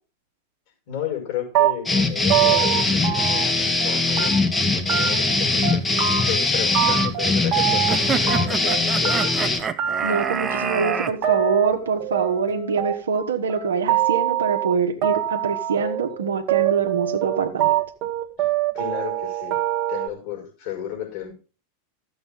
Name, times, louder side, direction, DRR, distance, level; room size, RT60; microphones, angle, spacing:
voice 1, 0.9-4.3 4.8-5.9 6.3-9.4 18.4-19.6 19.9-21.3, left 10 dB, 55° left, 2 dB, 5.5 m, -33 dB
sound 1, 1.5-3.9 4.2-4.6 4.9-5.4 5.6-6.5 6.7-8.8 9.0-20.1, right 12 dB, 45° right, 1.4 m, -24 dB
sound 2, 1.8-9.6, left 3 dB, 15° left, 1.5 m, -21 dB
sound 3, 7.9-11.1, right 7 dB, 25° right, 0.8 m, -27 dB
voice 2, 10.0-17.8, right 5 dB, 75° right, 5 dB, 1.4 m, -24 dB
13.5 x 7.9 x 3.6 m, 0.34 s
figure-of-eight pair, 90°, 0 cm